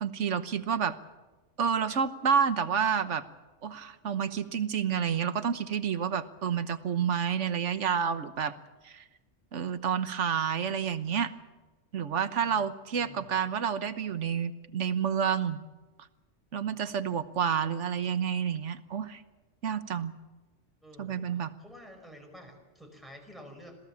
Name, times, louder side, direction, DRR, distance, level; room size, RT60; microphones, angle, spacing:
voice 1, 0.0-1.0 1.6-3.2 3.6-8.5 8.8-9.0 9.5-11.3 11.9-15.6 16.5-19.2 19.6-20.1 21.0-21.5, right 7 dB, 80° right, 12 dB, 1.4 m, -29 dB
voice 2, 12.9-13.3 20.8-23.8, equal, ahead, 2 dB, 5.3 m, -50 dB
27.0 x 17.0 x 7.2 m, 1.2 s
omnidirectional pair, 1.2 m